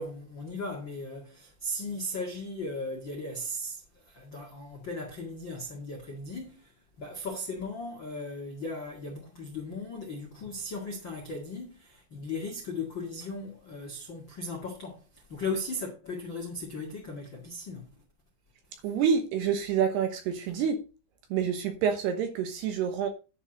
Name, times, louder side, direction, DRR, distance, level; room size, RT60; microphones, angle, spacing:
voice 1, 0.0-6.7 7.0-17.9, left 2 dB, 55° left, 1.3 m, -37 dB
voice 2, 18.8-20.8 21.3-23.1, right 7 dB, 70° right, 2.7 m, -27 dB
11.0 x 4.5 x 6.4 m
omnidirectional pair, 5.6 m